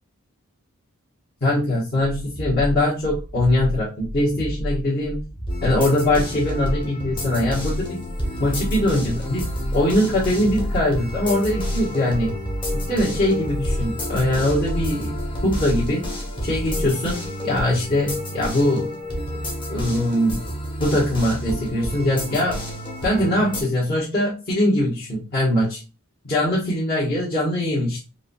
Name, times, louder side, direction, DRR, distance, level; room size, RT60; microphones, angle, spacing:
voice 1, 1.4-5.2 5.6-8.1 8.4-12.3 12.9-15.1 15.4-16.0 16.4-18.9 19.7-20.4 20.8-22.6 23.0-25.8 26.2-28.0, left 1 dB, 45° left, -10 dB, 1.3 m, -22 dB
sound 1, 2.0-16.9, equal, 5° left, 0.4 m, -30 dB
sound 2, 5.5-23.6, left 1 dB, 25° left, 1.0 m, -31 dB
4.7 x 2.7 x 2.3 m, 0.32 s
head